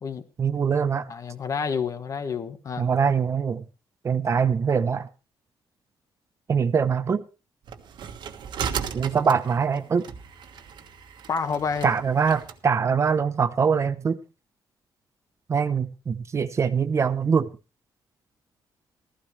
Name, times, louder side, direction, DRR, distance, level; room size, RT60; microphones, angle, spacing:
voice 1, 0.4-1.1 2.8-3.6 4.0-5.1 6.5-7.2 8.9-10.1 11.8-14.2 15.5-17.5, right 6 dB, 35° right, 0.8 m, -23 dB
voice 2, 1.1-2.9 11.3-11.9, left 6 dB, 40° left, 1.3 m, -29 dB
sound 1, 7.7-12.6, right 7 dB, 65° right, 1.5 m, -36 dB
15.5 x 14.0 x 3.2 m
cardioid pair, 135°, 8 cm